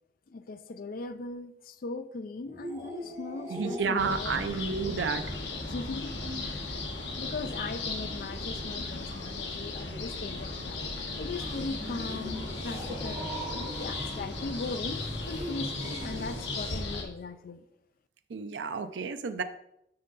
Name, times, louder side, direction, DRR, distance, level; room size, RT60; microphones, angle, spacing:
voice 1, 0.3-4.5 5.7-6.8 7.2-17.6, left 3 dB, 55° left, 11 dB, 0.4 m, -39 dB
sound 1, 2.4-17.0, equal, 15° right, 1.2 m, -44 dB
voice 2, 3.5-5.4 18.3-19.4, right 5 dB, 80° right, 9 dB, 0.5 m, -31 dB
sound 2, 4.0-17.0, left 3 dB, 85° left, 1.2 m, -36 dB
sound 3, 11.3-16.8, equal, 40° right, 2.2 m, -42 dB
6.4 x 5.7 x 3.9 m, 0.78 s
head